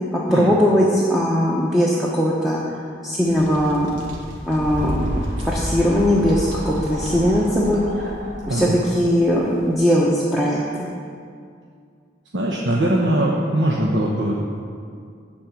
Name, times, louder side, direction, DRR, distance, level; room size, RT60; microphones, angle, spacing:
voice 1, 0.1-3.9 4.5-5.0 5.4-8.1 8.5-10.9, equal, ahead, -5 dB, 0.9 m, -20 dB
sound 1, 3.3-7.7, equal, 85° right, 1.4 m, -38 dB
sound 2, 4.1-9.7, equal, 40° right, 1.0 m, -30 dB
voice 2, 12.3-14.3, right 1 dB, 70° right, -4 dB, 1.1 m, -21 dB
12.0 x 4.4 x 8.2 m, 2.3 s
head